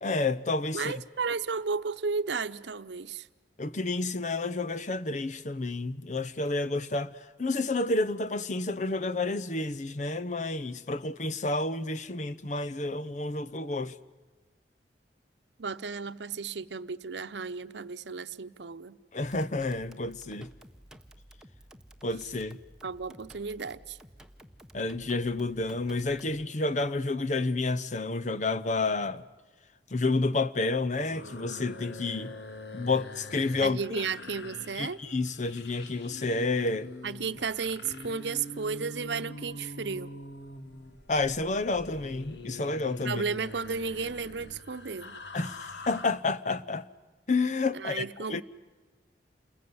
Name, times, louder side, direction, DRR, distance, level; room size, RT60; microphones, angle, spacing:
voice 1, 0.0-0.9 3.6-14.0 19.1-20.5 22.0-22.6 24.7-29.2 29.9-32.4 32.7-34.0 34.8-36.9 41.1-43.2 45.3-46.9 47.3-48.4, left 3 dB, 40° left, 0.8 m, -30 dB
voice 2, 0.7-3.3 15.6-19.0 22.8-24.0 33.6-35.0 37.0-40.1 43.0-45.2 47.7-48.4, right 5 dB, 85° right, 0.8 m, -33 dB
sound 1, 19.2-26.4, right 1 dB, 5° right, 1.3 m, -53 dB
sound 2, 31.0-46.1, left 2 dB, 80° left, 1.6 m, -44 dB
29.0 x 21.0 x 9.6 m
head